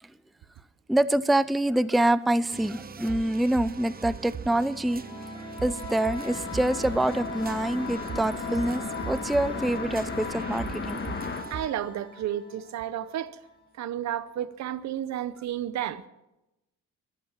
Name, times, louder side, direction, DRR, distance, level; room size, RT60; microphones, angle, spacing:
voice 1, 0.9-5.0 5.3-11.0, right 1 dB, ahead, 0.5 m, -26 dB
sound 1, 2.5-11.7, right 6 dB, 30° right, 0.9 m, -40 dB
sound 2, 4.6-13.2, left 3 dB, 15° left, 4.6 m, -40 dB
sound 3, 6.3-11.4, left 4 dB, 35° left, 2.1 m, -36 dB
voice 2, 11.5-13.4 13.8-16.1, right 11 dB, 65° right, 0.8 m, -32 dB
22.5 x 8.2 x 7.4 m
cardioid pair, 90°, 30 cm